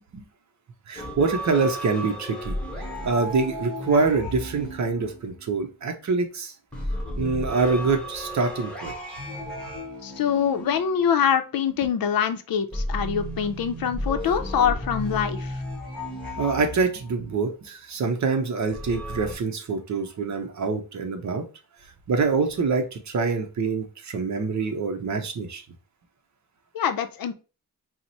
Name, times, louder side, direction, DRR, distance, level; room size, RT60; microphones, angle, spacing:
voice 1, 0.9-2.6 3.0-6.5 7.2-8.9 16.4-21.4 22.1-25.6, right 4 dB, 55° right, 6 dB, 0.8 m, -25 dB
sound 1, 1.0-5.6 6.7-11.5 12.7-17.4 18.7-19.3, left 1 dB, 5° left, 1.0 m, -34 dB
voice 2, 10.0-15.6 26.7-27.3, left 8 dB, 75° left, 9 dB, 0.6 m, -24 dB
4.5 x 2.1 x 4.0 m, 0.33 s
wide cardioid pair, 175°, 35 cm